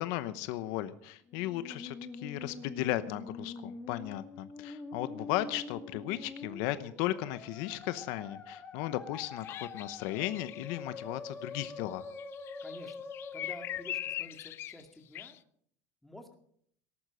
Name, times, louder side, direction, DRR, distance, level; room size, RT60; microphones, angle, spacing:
voice 1, 0.0-12.1, left 14 dB, 65° left, 13 dB, 0.9 m, -36 dB
Musical instrument, 1.3-14.3, left 4 dB, 20° left, 2.1 m, -45 dB
sound 1, 9.4-10.7 12.1-14.8 15.1-15.4, left 12 dB, 35° left, 0.6 m, -41 dB
voice 2, 12.6-13.0 13.3-15.4 16.0-16.4, left 1 dB, 5° left, 4 dB, 2.0 m, -50 dB
18.5 x 11.0 x 6.3 m, 0.65 s
cardioid pair, 160°, 7 cm